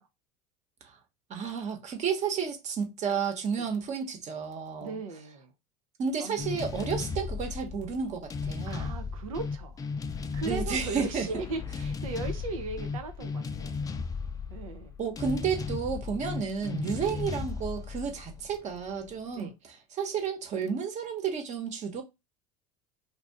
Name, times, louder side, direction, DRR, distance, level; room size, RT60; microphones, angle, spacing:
voice 1, 1.3-5.0 6.0-8.9 10.4-11.3 15.0-19.5 19.9-22.0, right 6 dB, 45° right, 1.1 m, -32 dB
voice 2, 4.8-5.5 6.2-6.5 6.7-6.9 8.7-9.8 10.1-13.8 14.5-15.0 17.1-17.2 19.3-19.5, right 3 dB, 85° right, 0.7 m, -38 dB
sound 1, 6.4-19.1, left 5 dB, 20° left, 0.4 m, -36 dB
2.7 x 2.4 x 3.5 m
hypercardioid pair, 85°, 17 cm